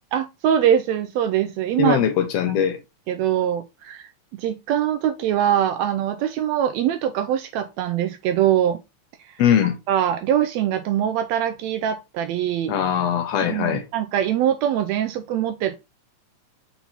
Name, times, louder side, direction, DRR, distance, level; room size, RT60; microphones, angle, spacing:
voice 1, 0.1-2.0 3.1-8.8 9.3-9.4 9.9-12.7 13.4-15.8, right 10 dB, 85° right, 1.5 m, -23 dB
voice 2, 1.8-2.8 9.4-9.7 12.7-13.8, left 8 dB, 85° left, 1.4 m, -21 dB
5.7 x 3.9 x 4.3 m
omnidirectional pair, 3.6 m